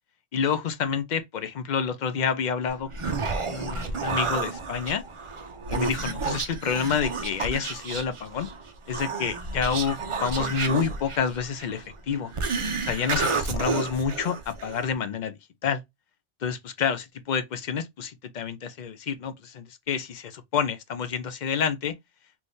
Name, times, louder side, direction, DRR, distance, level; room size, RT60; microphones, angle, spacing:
voice 1, 0.3-2.9 3.5-5.0 5.7-8.5 8.9-12.3 12.8-15.8 16.4-21.9, left 6 dB, 55° left, 0.5 m, -28 dB
Human voice, 2.7-14.9, right 4 dB, 40° right, 0.4 m, -31 dB
3.4 x 3.1 x 2.6 m
omnidirectional pair, 1.2 m